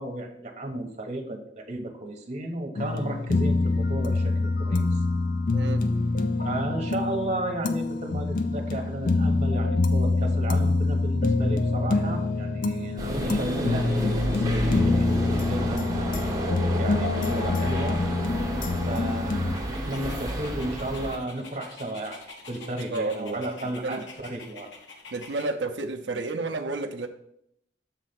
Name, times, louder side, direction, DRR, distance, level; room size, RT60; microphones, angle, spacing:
voice 1, 0.0-5.0 6.4-16.0 16.7-18.0 18.8-24.7, right 1 dB, 40° right, 2 dB, 1.2 m, -33 dB
sound 1, 2.8-19.6, left 3 dB, 45° left, 0.5 m, -25 dB
voice 2, 5.5-5.9 22.7-23.5 23.8-24.0 25.1-27.1, right 3 dB, 75° right, 5 dB, 0.6 m, -31 dB
sound 2, 13.0-21.2, right 1 dB, 20° right, 1.3 m, -31 dB
Dog, 19.5-25.5, left 3 dB, 80° left, 1.2 m, -46 dB
7.2 x 3.3 x 5.8 m, 0.74 s
head